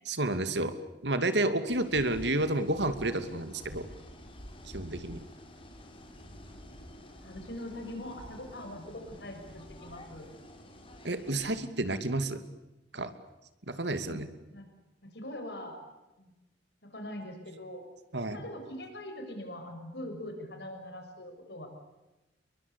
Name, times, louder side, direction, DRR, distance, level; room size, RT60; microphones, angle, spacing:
voice 1, 0.1-0.8 1.0-3.9 4.7-5.2 11.0-12.4 12.9-13.1 13.7-14.3 18.1-18.4, right 2 dB, 75° right, 10 dB, 2.7 m, -30 dB
sound 1, 1.7-11.7, equal, 30° left, 5.4 m, -49 dB
voice 2, 7.2-10.3 14.0-14.2 14.5-14.6 15.0-15.8 16.2-16.3 16.8-17.8 18.3-21.7, left 1 dB, 65° left, 5 dB, 6.5 m, -42 dB
30.0 x 22.5 x 8.4 m, 1.0 s
head